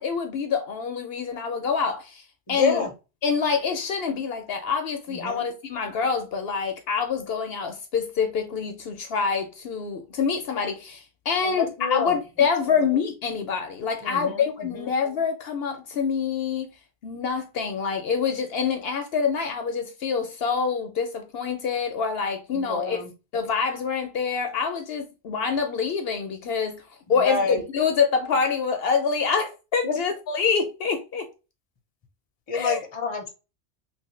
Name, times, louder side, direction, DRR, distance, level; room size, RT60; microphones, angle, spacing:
voice 1, 0.0-2.2 2.5-2.8 3.2-16.7 17.0-23.0 23.3-26.8 27.1-31.3 32.5-32.8, left 6 dB, 65° left, 0.8 m, -26 dB
voice 2, 2.5-2.9 5.1-5.4 11.4-12.2 12.7-12.9 14.0-14.9 22.5-23.1 27.2-27.6 29.8-30.0 32.5-33.3, left 4 dB, 30° left, 0.6 m, -28 dB
3.0 x 2.7 x 3.0 m
omnidirectional pair, 1.1 m